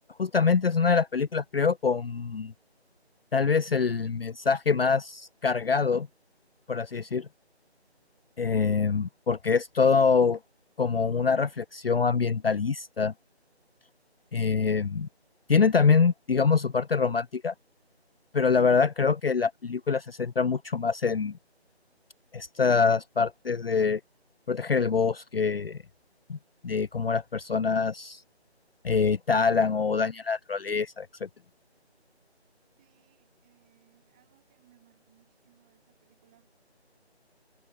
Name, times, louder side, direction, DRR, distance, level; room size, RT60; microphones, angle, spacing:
voice 1, 0.2-2.5 3.3-6.1 6.7-7.3 8.4-10.4 10.8-13.1 14.3-15.1 15.5-17.5 18.3-21.4 22.3-24.0 24.5-25.8 26.3-26.4 26.6-28.2 28.8-31.3, left 5 dB, 60° left, 0.4 m, -25 dB
voice 2, 32.8-36.5, right 13 dB, 5° right, 4.9 m, -65 dB
figure-of-eight pair, 180°, 33 cm